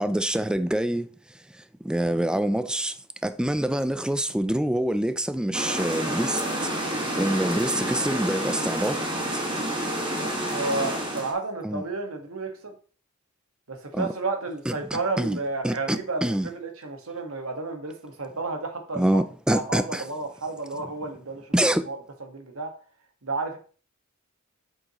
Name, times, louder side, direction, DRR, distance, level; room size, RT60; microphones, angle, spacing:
voice 1, 0.0-6.7 7.2-9.0 9.3-9.4 11.6-11.8 13.9-14.1 14.7-15.4 15.6-16.5 18.9-20.0 21.5-21.9, right 1 dB, 5° right, 0.3 m, -26 dB
sound 1, 5.5-11.3, right 1 dB, 20° right, 1.6 m, -29 dB
voice 2, 7.0-7.5 10.2-12.7 13.7-19.2 19.5-21.5 21.9-22.0 22.3-22.7 23.2-23.6, right 3 dB, 70° right, 1.5 m, -32 dB
7.6 x 6.3 x 3.0 m
head